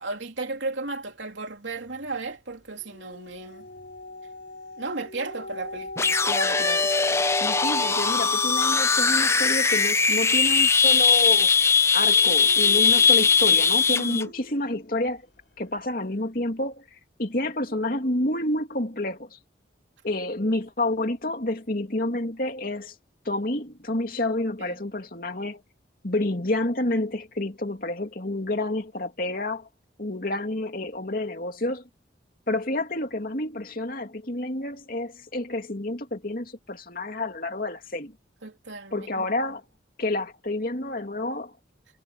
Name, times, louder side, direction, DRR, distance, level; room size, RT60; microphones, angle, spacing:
voice 1, 0.0-3.7 4.8-6.2 13.9-14.3 24.6-24.8 38.4-39.3, right 3 dB, 85° right, 3.2 m, -35 dB
sound 1, 1.8-2.3 2.7-15.2 15.7-15.8, left 1 dB, 65° left, 4.4 m, -40 dB
sound 2, 6.0-14.2, left 5 dB, 15° left, 0.6 m, -20 dB
voice 2, 6.3-6.9 7.4-11.5 11.9-15.2 15.6-16.8 17.2-19.4 20.0-22.9 23.2-25.6 26.0-29.7 30.0-31.8 32.5-38.1 38.9-39.6 40.0-41.6, left 1 dB, 50° left, 2.7 m, -29 dB
head